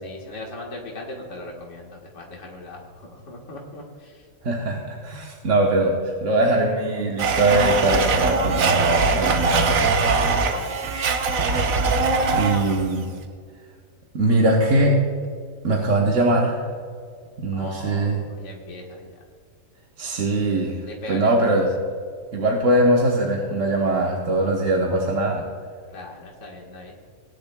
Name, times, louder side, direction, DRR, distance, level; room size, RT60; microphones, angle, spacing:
voice 1, 0.0-4.3 10.2-10.8 17.5-19.2 20.8-21.6 25.9-26.9, left 2 dB, 65° left, -1 dB, 1.8 m, -39 dB
voice 2, 4.4-9.9 12.3-13.0 14.1-15.0 15.6-16.6 17.4-18.2 20.0-20.8 21.1-21.7 22.3-25.4, right 1 dB, 65° right, -1 dB, 1.4 m, -21 dB
Domestic sounds home sounds, 7.2-12.9, right 4 dB, 85° right, 1.3 m, -21 dB
19.0 x 10.5 x 2.2 m, 2.1 s
omnidirectional pair, 1.4 m